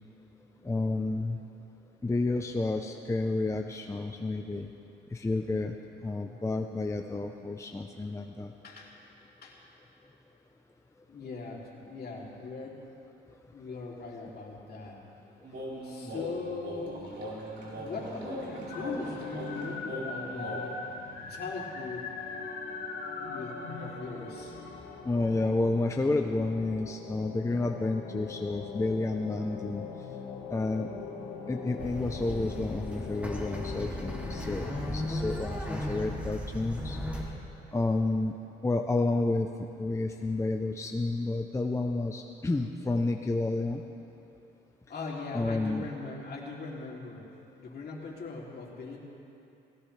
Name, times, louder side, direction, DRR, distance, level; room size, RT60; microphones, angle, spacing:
voice 1, 0.6-1.4 2.0-4.7 5.1-5.7 6.0-8.5 15.5-15.6 25.0-29.8 30.5-30.9 31.5-37.0 37.3-37.4 37.7-38.4 38.6-39.5 39.8-43.8 45.3-45.9, left 2 dB, 15° left, 3 dB, 0.7 m, -30 dB
voice 2, 8.6-9.0 9.4-9.6 11.1-12.8 13.5-15.0 15.7-17.0 17.8-20.9 21.3-22.1 23.2-24.6 44.9-47.2 47.6-49.0, left 3 dB, 55° left, -3 dB, 3.0 m, -40 dB
sound 1, 15.4-20.7, right 1 dB, 60° right, 4.3 m, -39 dB
sound 2, 18.5-35.6, left 5 dB, 90° left, 1.8 m, -41 dB
sound 3, 31.8-37.2, equal, 5° right, 2.5 m, -36 dB
19.0 x 17.0 x 3.3 m, 2.8 s
cardioid pair, 90°, 20 cm